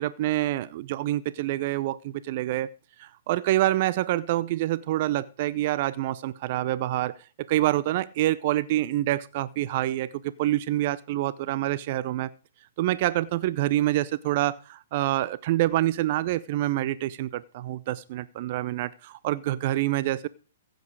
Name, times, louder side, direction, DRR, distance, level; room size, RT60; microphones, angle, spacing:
voice 1, 0.0-2.7 3.0-7.2 7.5-12.3 12.8-20.3, right 15 dB, 45° right, 0.6 m, -26 dB
15.5 x 7.9 x 4.7 m
hypercardioid pair, 125°, 0 cm